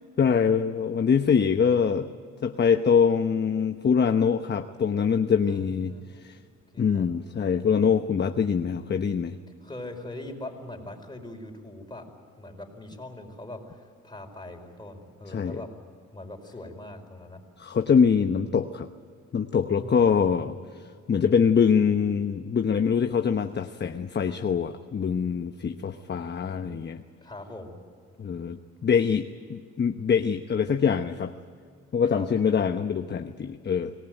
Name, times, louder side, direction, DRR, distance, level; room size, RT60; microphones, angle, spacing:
voice 1, 0.2-2.1 2.4-6.4 6.8-9.4 15.3-15.6 17.6-18.9 19.3-20.8 21.1-27.0 28.2-31.3 31.9-33.9, left 6 dB, 35° left, 8 dB, 1.0 m, -24 dB
voice 2, 5.5-6.3 6.7-7.1 9.6-12.1 12.4-15.7 16.1-17.4 19.8-20.6 27.2-27.8 32.1-32.3, left 1 dB, 15° left, 3 dB, 4.7 m, -41 dB
25.5 x 18.5 x 9.1 m, 2.1 s
cardioid pair, 90°, 30 cm